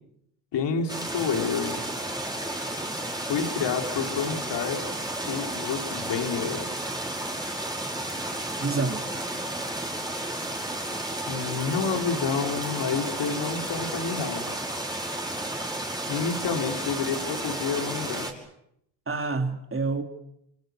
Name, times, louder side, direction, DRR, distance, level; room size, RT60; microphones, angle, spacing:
voice 1, 0.5-1.8 3.3-4.8 5.3-6.7 11.3-14.5 16.1-18.4, left 5 dB, 65° left, 3 dB, 4.1 m, -29 dB
sound 1, 0.9-18.3, right 1 dB, 10° right, 5.7 m, -32 dB
voice 2, 8.6-9.0 19.1-20.0, right 3 dB, 30° right, 6 dB, 3.4 m, -27 dB
29.0 x 25.0 x 6.7 m, 0.76 s
supercardioid pair, 65°, 45 cm